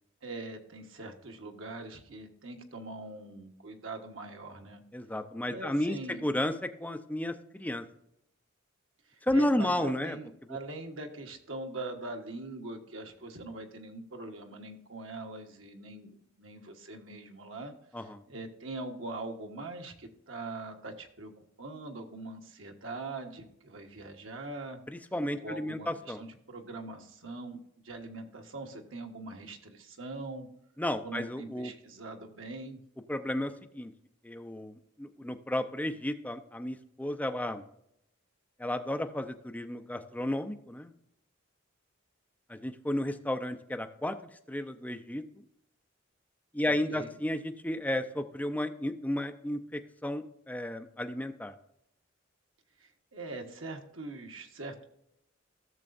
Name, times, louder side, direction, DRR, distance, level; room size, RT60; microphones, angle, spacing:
voice 1, 0.2-4.8 5.4-6.2 9.1-21.3 21.6-24.8 25.4-27.6 27.8-30.5 31.0-32.8 46.6-47.1 52.8-54.8, right 2 dB, 75° right, 3 dB, 1.3 m, -42 dB
voice 2, 4.9-7.8 9.2-10.2 17.9-18.2 24.9-26.2 30.8-31.7 33.1-33.9 34.2-37.6 38.6-40.9 42.5-44.2 44.5-45.2 46.5-51.5, left 1 dB, 10° left, 6 dB, 0.6 m, -33 dB
15.5 x 6.7 x 2.6 m, 0.77 s
head